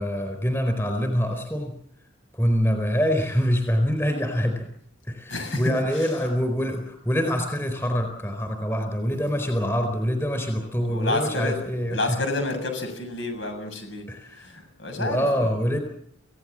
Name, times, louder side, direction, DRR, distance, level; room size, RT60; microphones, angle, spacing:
voice 1, 0.0-1.7 2.3-4.7 5.1-12.0 14.1-14.6 15.0-15.8, equal, 15° left, 6 dB, 4.4 m, -25 dB
voice 2, 5.3-6.2 10.6-11.6 11.9-14.1 14.3-15.5, left 2 dB, 70° left, 7 dB, 7.2 m, -30 dB
28.0 x 17.0 x 7.7 m, 0.69 s
head